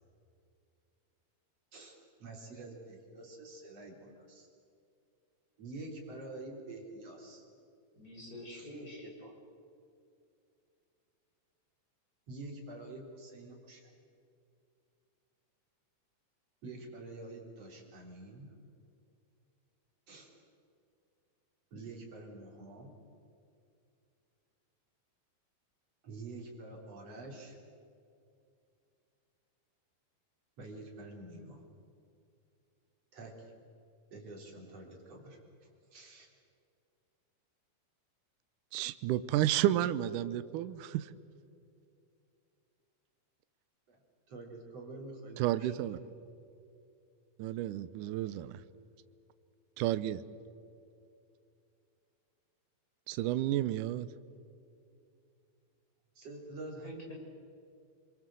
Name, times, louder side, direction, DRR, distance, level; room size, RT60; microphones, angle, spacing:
voice 1, 1.7-4.5 5.6-7.4 8.5-8.7 9.0-9.3 12.3-13.9 16.6-18.5 20.1-20.3 21.7-22.9 26.0-27.6 30.6-31.6 33.1-33.5 34.1-35.4 35.9-36.3 43.9-44.0 44.3-45.7 56.2-56.9, right 2 dB, 40° right, 0 dB, 4.4 m, -47 dB
voice 2, 8.0-9.1 56.8-57.1, equal, 20° left, -1 dB, 5.7 m, -46 dB
voice 3, 38.7-41.1 45.4-46.0 47.4-48.6 49.8-50.2 53.1-54.1, right 13 dB, 75° right, 13 dB, 1.9 m, -31 dB
28.5 x 22.5 x 7.8 m, 2.5 s
omnidirectional pair, 4.5 m